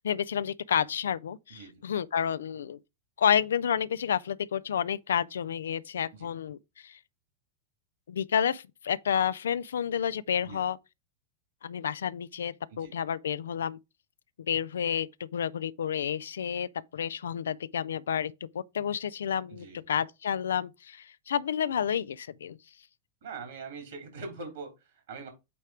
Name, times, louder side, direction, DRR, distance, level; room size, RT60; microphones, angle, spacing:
voice 1, 0.0-2.8 3.2-6.6 6.8-6.9 8.1-10.8 11.6-13.8 14.5-22.6, left 8 dB, 65° left, 0.4 m, -30 dB
voice 2, 1.5-1.8 6.1-6.3 10.4-10.7 12.7-12.9 19.5-19.9 23.2-25.3, right 4 dB, 60° right, 3.4 m, -43 dB
8.4 x 3.1 x 4.9 m
figure-of-eight pair, 90°, 0 cm